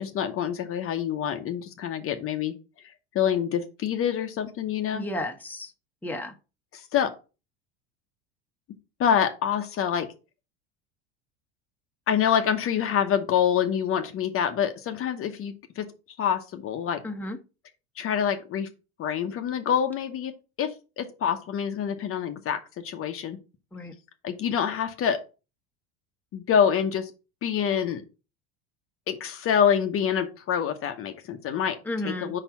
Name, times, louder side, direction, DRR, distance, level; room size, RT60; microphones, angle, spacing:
voice 1, 0.0-2.5 3.1-5.1 6.7-7.1 9.0-10.1 12.1-15.9 16.2-17.0 18.0-18.7 19.0-20.3 20.6-23.4 24.2-25.2 26.3-27.1 27.4-28.0 29.1-31.8 32.0-32.4, left 8 dB, 40° left, 7 dB, 0.9 m, -26 dB
voice 2, 4.9-5.7 6.0-6.3 17.0-17.4 23.7-23.9 31.8-32.3, left 1 dB, 5° left, 4 dB, 1.0 m, -32 dB
4.9 x 4.5 x 5.6 m, 0.32 s
supercardioid pair, 95°, 32 cm